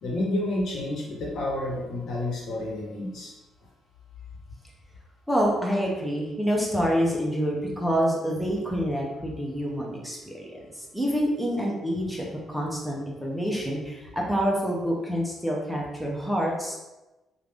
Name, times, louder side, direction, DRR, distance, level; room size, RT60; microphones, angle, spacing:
voice 1, 0.0-3.3, left 1 dB, 70° left, -4 dB, 1.1 m, -30 dB
voice 2, 5.3-16.7, equal, ahead, -3 dB, 0.7 m, -27 dB
3.1 x 2.5 x 3.4 m, 1.1 s
cardioid pair, 100°, 0 cm